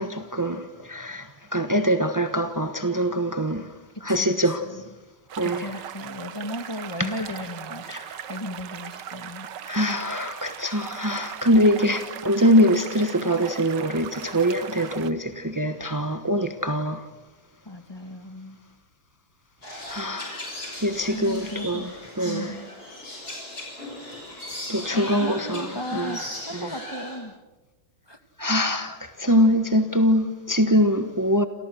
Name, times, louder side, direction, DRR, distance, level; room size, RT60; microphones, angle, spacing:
voice 1, 0.0-3.7 4.0-4.6 5.4-5.7 7.0-7.2 7.9-8.2 9.6-17.1 19.9-20.5 20.8-21.9 22.2-22.6 24.7-26.2 26.5-26.7 28.4-31.4, equal, 20° right, 0.5 m, -23 dB
sound 1, 5.3-15.1, right 9 dB, 60° right, 1.5 m, -39 dB
voice 2, 5.4-9.5 12.2-12.3 17.7-18.6 21.1-21.8 22.2-22.7 24.9-27.3 28.1-28.2, left 1 dB, 10° left, 1.8 m, -35 dB
sound 2, 19.6-27.2, left 1 dB, 40° left, 7.6 m, -38 dB
28.5 x 28.5 x 6.4 m
omnidirectional pair, 2.4 m